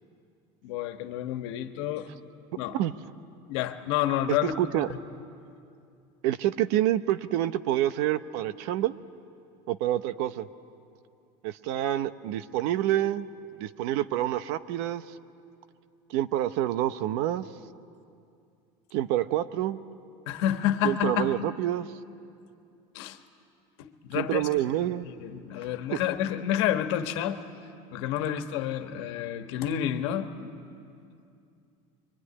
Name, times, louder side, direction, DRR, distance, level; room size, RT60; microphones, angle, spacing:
voice 1, 0.6-2.1 2.5-2.7 3.5-4.5 20.3-21.3 22.9-23.2 23.8-24.5 25.0-27.4 27.9-30.3, left 11 dB, 80° left, 7 dB, 1.5 m, -29 dB
voice 2, 4.6-4.9 6.2-9.0 9.7-10.5 11.4-13.3 13.6-15.0 16.1-17.5 18.9-19.8 20.8-21.9 24.1-25.1 25.9-26.0, right 13 dB, 65° right, 13 dB, 0.9 m, -27 dB
25.5 x 23.5 x 9.9 m, 2.5 s
cardioid pair, 165°, 14 cm